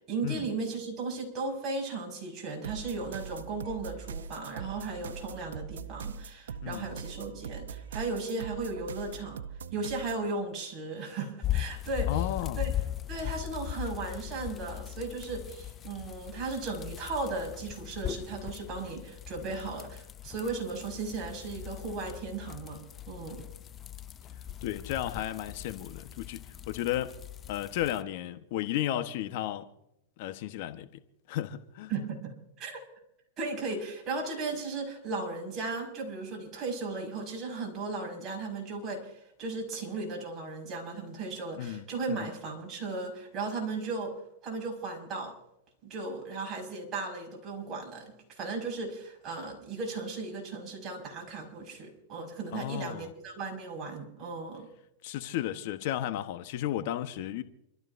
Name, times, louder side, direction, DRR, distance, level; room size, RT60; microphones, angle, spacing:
voice 1, 0.0-9.4 9.7-12.3 12.5-12.8 13.1-22.8 23.1-23.4 31.9-32.8 33.4-45.3 45.8-54.7, right 3 dB, 30° right, 5.4 m, -36 dB
sound 1, 2.6-10.3, right 6 dB, 90° right, 0.7 m, -42 dB
voice 2, 6.6-6.9 12.1-12.6 24.6-27.1 27.5-29.7 30.2-30.9 31.3-31.9 41.6-42.3 52.5-53.1 55.0-57.4, left 12 dB, 55° left, 1.1 m, -34 dB
sound 2, 11.4-28.0, left 12 dB, 25° left, 0.4 m, -39 dB
29.0 x 13.5 x 2.6 m
hypercardioid pair, 130°, 0 cm